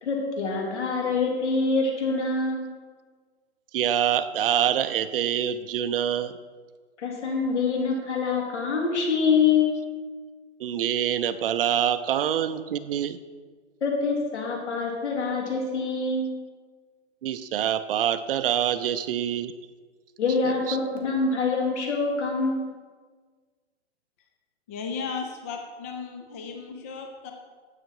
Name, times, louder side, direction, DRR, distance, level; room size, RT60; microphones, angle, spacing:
voice 1, 0.0-2.7 7.0-9.7 13.8-16.3 20.2-22.7, left 4 dB, 75° left, -1 dB, 3.7 m, -25 dB
voice 2, 3.7-6.4 10.6-13.2 17.2-19.5 20.4-20.8, right 10 dB, 50° right, 12 dB, 0.7 m, -25 dB
voice 3, 24.7-27.3, left 5 dB, 15° left, 3 dB, 0.3 m, -35 dB
12.0 x 8.8 x 4.8 m, 1.5 s
hypercardioid pair, 155°, 35 cm